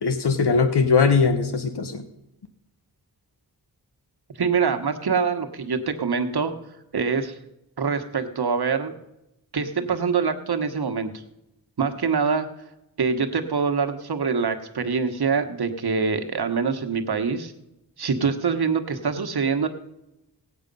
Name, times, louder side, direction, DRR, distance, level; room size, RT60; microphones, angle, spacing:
voice 1, 0.0-2.0, left 5 dB, 80° left, 8 dB, 1.0 m, -20 dB
voice 2, 4.4-6.5 6.9-7.4 7.8-8.9 9.5-11.1 11.8-12.5 13.0-17.5 18.0-19.7, right 5 dB, 70° right, 7 dB, 1.2 m, -24 dB
18.0 x 8.1 x 5.3 m, 0.90 s
wide cardioid pair, 90°, 40 cm